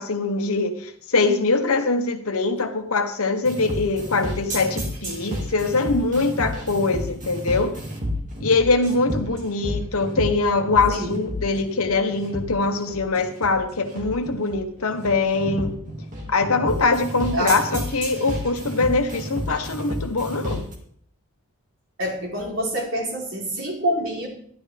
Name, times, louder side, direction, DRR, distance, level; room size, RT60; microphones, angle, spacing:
voice 1, 0.0-7.7 8.4-15.7 16.3-20.7, left 3 dB, 80° left, 7 dB, 1.1 m, -23 dB
sound 1, 3.4-20.7, equal, 35° right, 2.0 m, -31 dB
voice 2, 10.9-11.2 17.3-17.6 22.0-24.3, equal, 60° right, -3 dB, 3.5 m, -26 dB
12.0 x 11.0 x 3.4 m, 0.63 s
head